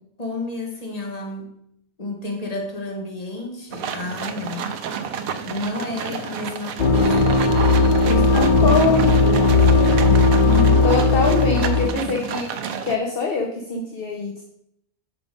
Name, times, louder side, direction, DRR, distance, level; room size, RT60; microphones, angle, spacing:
voice 1, 0.2-1.5 2.0-4.7 5.4-7.4 8.1-10.9, left 2 dB, 25° left, 0 dB, 1.7 m, -31 dB
sound 1, 3.7-13.0, right 7 dB, 75° right, 1.1 m, -31 dB
sound 2, 6.8-11.9, left 3 dB, 75° left, 0.4 m, -17 dB
voice 2, 8.1-9.1 10.8-14.4, left 4 dB, 45° left, 1 dB, 1.1 m, -24 dB
8.2 x 5.0 x 5.2 m, 0.74 s
omnidirectional pair, 1.5 m